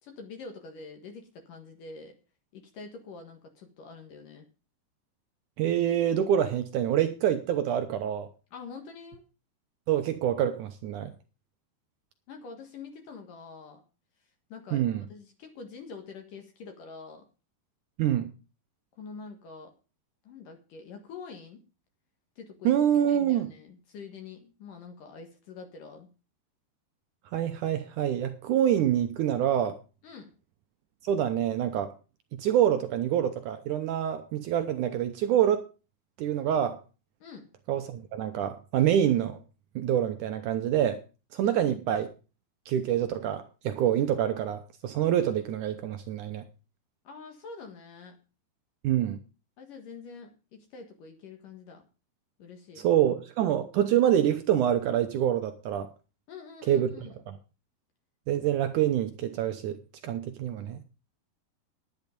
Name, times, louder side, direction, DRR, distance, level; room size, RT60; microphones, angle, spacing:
voice 1, 0.0-2.2 2.5-4.5 8.5-9.2 12.3-13.8 14.5-17.2 19.0-19.7 20.2-21.6 22.4-26.1 30.0-30.3 37.2-37.5 41.4-41.8 47.0-48.2 49.6-51.8 52.4-52.9 56.3-57.2, left 4 dB, 60° left, 2.9 m, -45 dB
voice 2, 5.6-8.3 9.9-11.1 14.7-15.0 18.0-18.3 22.7-23.5 27.3-29.8 31.0-31.9 32.4-35.7 36.2-36.8 37.7-39.4 39.8-41.0 41.3-42.1 42.7-46.4 48.8-49.2 52.8-55.9 56.6-56.9 57.3-57.4 58.3-60.8, right 10 dB, 85° right, 1.8 m, -26 dB
10.5 x 10.5 x 5.1 m
omnidirectional pair, 4.7 m